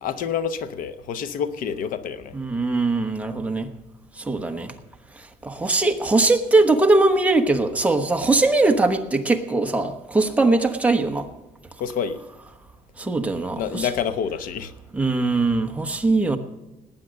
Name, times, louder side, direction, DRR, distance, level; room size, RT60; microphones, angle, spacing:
voice 1, 0.0-2.3 11.8-12.2 13.6-14.7, left 7 dB, 70° left, 12 dB, 0.9 m, -27 dB
voice 2, 2.3-3.7 4.2-4.7 5.4-11.3 13.0-13.9 14.9-16.4, right 2 dB, 10° right, 5 dB, 1.1 m, -21 dB
19.0 x 9.2 x 6.5 m, 1.0 s
cardioid pair, 155°, 15 cm